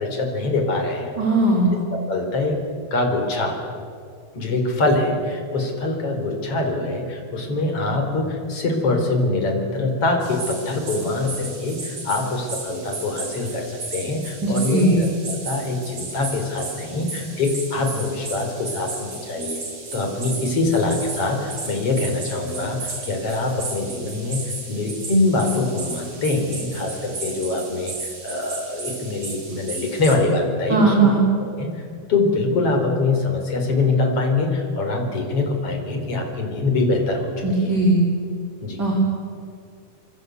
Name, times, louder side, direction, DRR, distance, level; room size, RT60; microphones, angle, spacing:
voice 1, 0.0-1.1 1.9-2.6 2.9-3.6 4.3-19.6 19.9-30.9 31.4-31.8 32.1-37.7 38.6-38.8, left 2 dB, 50° left, 3 dB, 5.2 m, -24 dB
voice 2, 1.2-1.7 14.4-15.0 30.7-31.2 37.4-38.0 38.8-38.9, right 2 dB, 30° right, -2 dB, 4.3 m, -18 dB
sound 1, 10.2-30.2, right 4 dB, 50° right, 5.1 m, -35 dB
26.5 x 25.5 x 8.3 m, 2.3 s
omnidirectional pair, 3.5 m